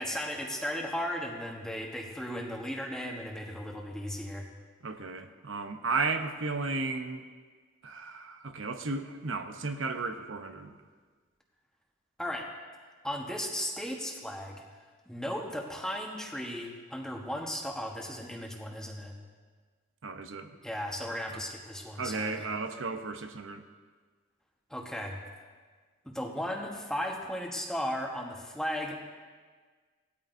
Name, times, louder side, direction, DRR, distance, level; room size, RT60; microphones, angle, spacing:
voice 1, 0.0-4.5 12.2-12.5 13.0-14.6 15.1-19.2 20.6-22.5 24.7-25.2 26.0-28.9, equal, 5° left, 0 dB, 1.2 m, -36 dB
voice 2, 4.8-7.2 7.8-10.7 20.0-20.5 21.3-21.4 22.0-23.6, right 3 dB, 85° right, 7 dB, 0.8 m, -34 dB
18.0 x 13.0 x 2.7 m, 1.5 s
head